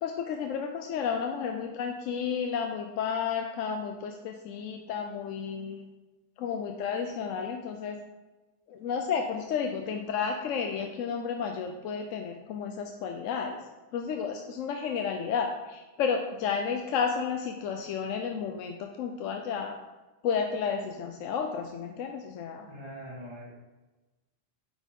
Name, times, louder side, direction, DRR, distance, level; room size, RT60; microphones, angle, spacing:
voice 1, 0.0-5.8 6.4-8.0 8.7-13.6 13.9-19.8 20.2-22.7, left 6 dB, 80° left, 3 dB, 1.0 m, -32 dB
voice 2, 22.6-23.5, equal, 25° right, -10 dB, 1.9 m, -43 dB
9.8 x 4.1 x 3.6 m, 1.2 s
omnidirectional pair, 1.3 m